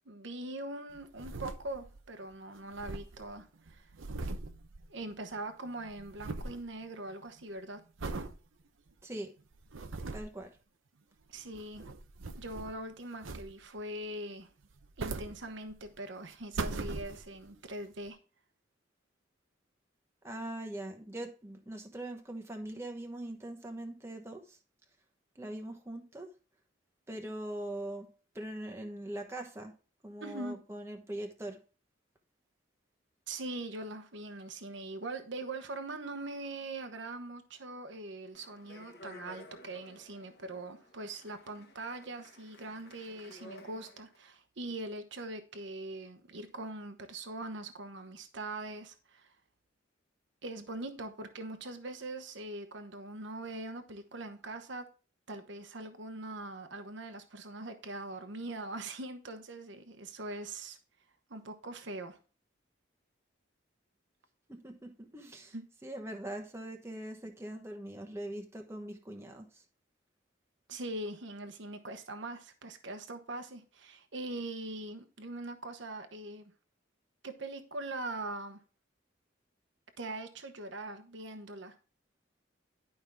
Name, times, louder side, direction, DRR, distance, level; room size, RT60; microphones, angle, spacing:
voice 1, 0.1-3.9 4.9-7.8 11.3-11.9 12.4-14.5 15.0-18.2 30.2-30.6 33.3-49.3 50.4-54.8 55.3-60.8 61.3-62.2 65.5-65.6 70.7-76.5 77.2-78.6 80.0-81.7, right 2 dB, 70° right, 1.1 m, -42 dB
sound 1, 0.9-2.1 2.3-2.4 2.6-5.4 5.6-6.7 7.1-7.4 8.0-8.4 8.9-9.0 9.5-10.4 11.4-12.8 13.2-13.8 14.6-15.9 16.3-17.5 18.1-18.2, right 3 dB, 90° right, 0.8 m, -40 dB
voice 2, 10.1-10.5 20.2-24.6 25.4-26.3 27.1-28.1 28.3-29.7 30.0-31.6 64.5-65.5 65.8-69.6, right 1 dB, 15° right, 1.1 m, -42 dB
Speech, 38.3-44.2, left 1 dB, 55° left, 1.4 m, -54 dB
11.5 x 5.4 x 3.4 m
head